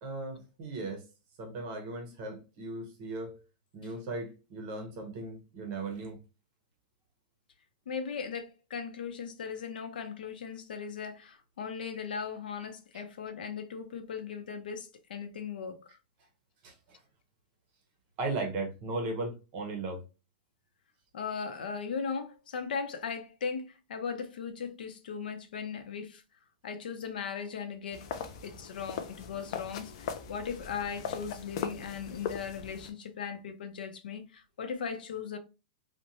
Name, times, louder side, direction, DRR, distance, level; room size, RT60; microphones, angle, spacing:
voice 1, 0.0-1.1 1.4-3.4 3.7-6.2 16.6-17.0 18.2-20.1, right 2 dB, 25° right, 0.7 m, -37 dB
voice 2, 7.9-16.0 21.1-26.2 26.6-28.1 28.4-35.4, left 6 dB, 85° left, 0.6 m, -38 dB
sound 1, 27.9-32.9, left 7 dB, 35° left, 0.3 m, -39 dB
2.9 x 2.1 x 2.6 m
supercardioid pair, 180°, 5 cm